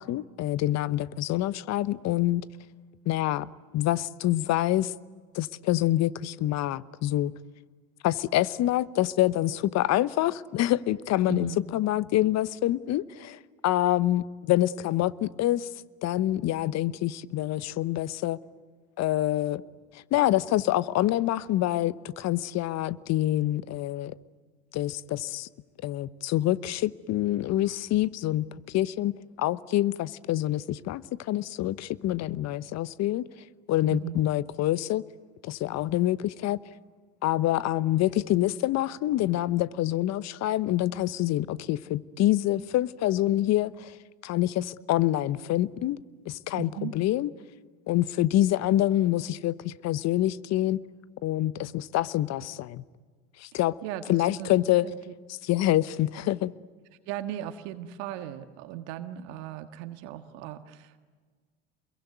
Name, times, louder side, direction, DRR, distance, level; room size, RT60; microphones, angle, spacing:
voice 1, 0.0-2.5 3.1-3.5 3.7-4.9 5.3-7.3 8.0-15.7 16.0-18.4 19.0-19.6 19.9-24.2 24.7-25.5 25.8-29.1 29.4-33.2 33.7-35.0 35.4-36.6 37.2-44.0 44.2-46.0 46.3-47.3 47.9-50.8 51.2-52.8 53.4-53.8 54.1-54.9 55.4-56.5, left 14 dB, 50° left, 1.0 m, -26 dB
voice 2, 11.3-11.7 33.9-34.2 46.5-46.9 53.5-55.1 57.0-61.0, right 11 dB, 65° right, 1.7 m, -38 dB
28.5 x 22.5 x 9.4 m
hypercardioid pair, 75°, 35 cm